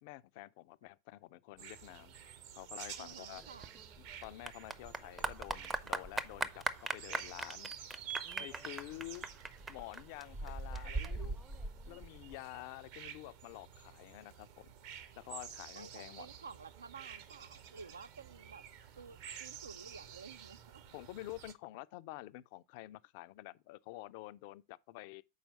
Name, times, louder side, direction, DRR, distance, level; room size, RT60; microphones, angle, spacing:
voice 1, 0.0-2.1 2.6-3.4 4.0-7.7 8.4-9.3 9.7-11.4 11.9-14.7 15.2-16.3 20.9-25.2, left 18 dB, 45° left, 0.3 m, -49 dB
sound 1, 1.6-21.5, right 9 dB, 45° right, 0.7 m, -51 dB
voice 2, 3.0-3.7 15.7-18.7 19.0-20.8, right 5 dB, 75° right, 0.3 m, -52 dB
Clapping / Applause, 3.4-12.4, right 2 dB, 10° right, 0.5 m, -40 dB
5.6 x 4.4 x 5.3 m
figure-of-eight pair, 90°, 0 cm